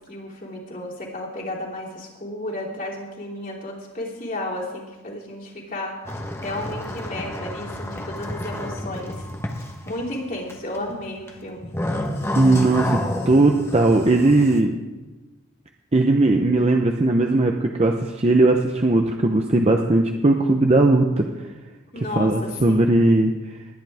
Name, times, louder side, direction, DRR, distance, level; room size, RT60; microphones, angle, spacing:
voice 1, 0.1-5.9 6.4-9.2 9.8-11.7 21.9-22.9, left 1 dB, 40° left, -3 dB, 3.1 m, -33 dB
sound 1, 6.1-10.2 10.5-10.9 11.3-14.6, left 1 dB, 10° left, 1.1 m, -29 dB
voice 2, 12.4-13.0 13.3-14.8 15.9-21.2 22.2-23.3, right 2 dB, 30° right, 3 dB, 0.7 m, -18 dB
20.0 x 10.5 x 3.5 m, 1.2 s
head